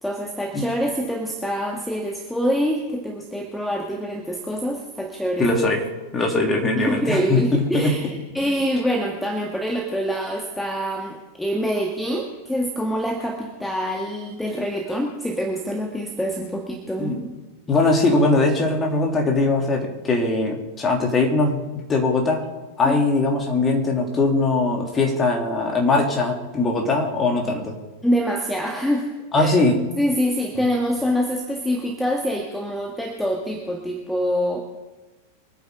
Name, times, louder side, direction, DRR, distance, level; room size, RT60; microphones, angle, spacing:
voice 1, 0.0-5.5 6.8-17.1 22.8-23.0 28.0-29.1 29.3-29.5 30.0-34.6, equal, 5° left, 1 dB, 1.7 m, -25 dB
voice 2, 5.4-5.8 6.1-8.1 17.0-17.3 17.7-22.5 22.8-27.8 29.3-29.8, left 3 dB, 20° left, 1 dB, 3.1 m, -21 dB
24.5 x 9.6 x 3.9 m, 1.2 s
figure-of-eight pair, 90°, 0 cm